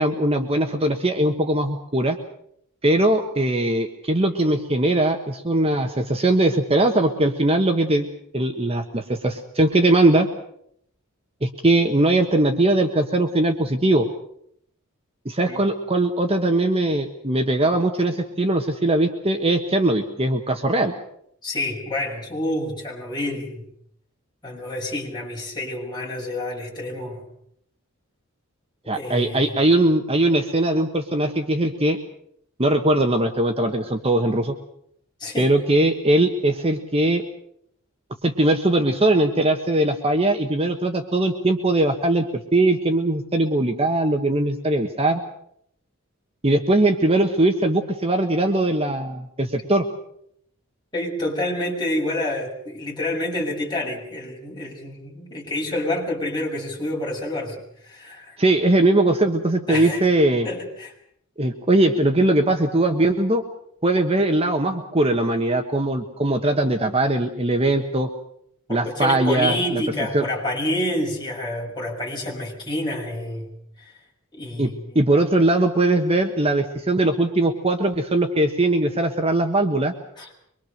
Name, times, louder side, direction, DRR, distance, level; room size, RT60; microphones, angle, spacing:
voice 1, 0.0-2.2 2.8-8.1 8.3-10.3 11.4-14.1 15.2-20.9 28.9-32.0 32.6-34.5 35.4-37.2 38.2-42.2 42.5-45.2 46.4-49.8 58.4-60.5 61.4-63.4 63.8-68.1 68.7-69.8 70.1-70.3 74.6-79.9, right 1 dB, 30° right, 5 dB, 1.4 m, -20 dB
voice 2, 21.4-23.6 24.4-27.2 28.9-29.5 35.2-35.5 50.9-57.6 57.8-58.3 59.7-60.1 60.4-60.9 68.7-73.5 73.8-73.9 74.4-75.0 80.2-80.3, left 1 dB, 20° left, -2 dB, 6.7 m, -28 dB
24.5 x 23.0 x 6.7 m, 0.71 s
head